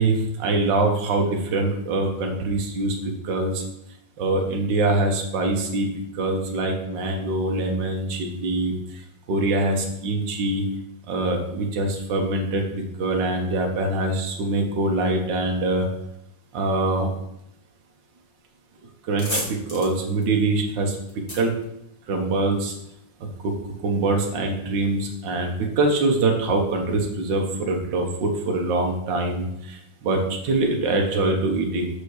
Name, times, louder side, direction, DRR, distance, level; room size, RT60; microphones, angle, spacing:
voice 1, 0.0-3.6 4.2-5.9 6.1-9.0 9.3-10.6 11.1-12.6 13.0-15.9 16.5-17.1 19.1-21.5 22.1-22.7 23.2-23.5 23.8-31.9, right 2 dB, 50° right, 2 dB, 1.5 m, -24 dB
sound 1, 18.4-18.6 18.9-22.5, equal, 15° left, 1.9 m, -34 dB
6.8 x 5.1 x 6.5 m, 0.79 s
omnidirectional pair, 3.3 m